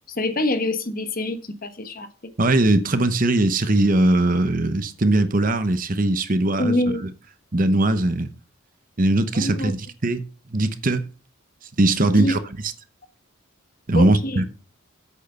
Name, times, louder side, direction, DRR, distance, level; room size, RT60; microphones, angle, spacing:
voice 1, 0.1-2.1 6.6-7.0 9.3-9.7 12.0-12.3 13.9-14.4, left 1 dB, 40° left, 1.2 m, -25 dB
voice 2, 2.4-6.8 7.5-8.3 9.0-10.2 10.5-11.1 11.8-12.7 13.9-14.4, right 2 dB, 40° right, 0.9 m, -20 dB
8.3 x 6.4 x 6.8 m
head